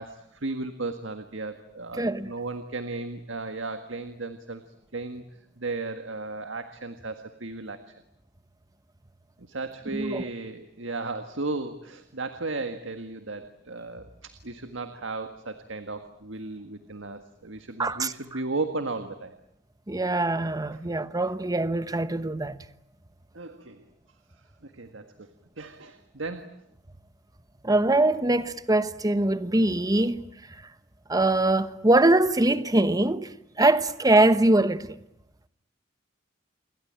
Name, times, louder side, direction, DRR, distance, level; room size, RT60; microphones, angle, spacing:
voice 1, 0.0-4.6 4.9-5.2 5.6-7.9 9.4-19.4 20.7-20.8 23.3-23.8 24.6-25.3 25.6-26.6, right 3 dB, 70° right, 1.7 m, -35 dB
voice 2, 2.0-2.3 9.9-10.2 17.8-18.1 19.9-22.6 27.6-30.2 31.1-34.9, right 2 dB, 20° right, 1.1 m, -23 dB
28.5 x 22.0 x 8.9 m
head